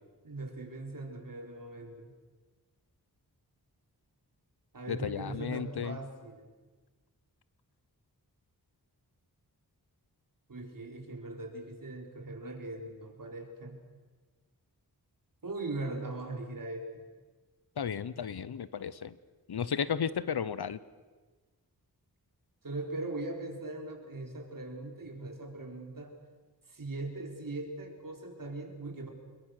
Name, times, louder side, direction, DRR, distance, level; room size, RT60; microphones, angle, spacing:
voice 1, 0.2-2.1 4.7-6.5 10.5-13.8 15.4-16.8 22.6-26.2 26.7-29.1, right 2 dB, 60° right, 3 dB, 4.2 m, -40 dB
voice 2, 4.9-6.0 17.8-19.1 19.5-20.8, left 7 dB, 90° left, 17 dB, 0.9 m, -34 dB
27.5 x 22.0 x 6.6 m, 1.3 s
wide cardioid pair, 75°, 38 cm